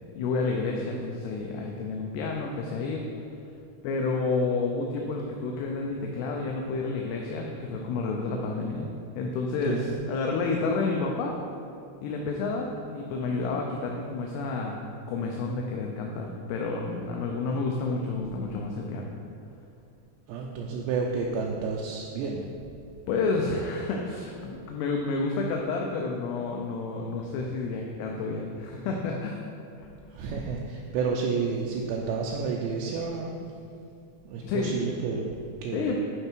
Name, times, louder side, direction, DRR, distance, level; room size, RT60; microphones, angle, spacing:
voice 1, 0.2-3.0 3.8-8.9 9.2-11.4 12.0-14.8 15.1-19.1 23.1-29.4 29.8-29.9 34.4-34.8 35.7-36.0, left 3 dB, 80° left, 0 dB, 2.5 m, -30 dB
voice 2, 20.3-22.5 30.1-33.4 34.3-36.0, right 5 dB, 80° right, -1 dB, 2.7 m, -30 dB
9.8 x 5.7 x 4.5 m, 2.4 s
omnidirectional pair, 5.2 m